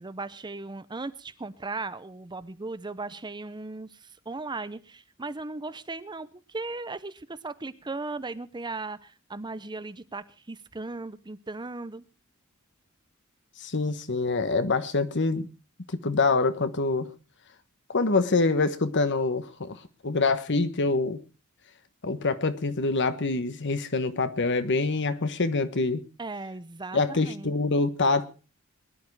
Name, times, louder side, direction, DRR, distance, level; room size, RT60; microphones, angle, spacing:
voice 1, 0.0-12.0 26.2-27.6, right 3 dB, 20° right, 0.7 m, -37 dB
voice 2, 13.6-15.4 16.0-17.1 17.9-19.8 20.0-21.2 22.0-26.0 26.9-28.3, left 3 dB, 55° left, 1.2 m, -25 dB
21.0 x 11.0 x 4.7 m
head